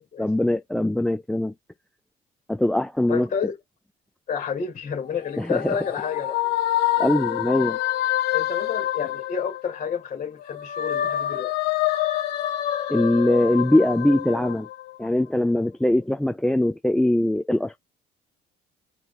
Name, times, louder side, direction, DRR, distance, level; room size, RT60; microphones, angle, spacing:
voice 1, 0.2-1.5 2.5-3.3 5.4-5.8 7.0-7.8 12.9-14.7 15.0-17.8, left 1 dB, 5° left, 0.4 m, -22 dB
voice 2, 3.1-3.6 4.3-6.4 8.3-11.5, left 7 dB, 40° left, 2.3 m, -30 dB
sound 1, 5.0-10.0 10.4-15.2, left 13 dB, 80° left, 1.2 m, -27 dB
4.9 x 3.0 x 2.8 m
cardioid pair, 110°, 17 cm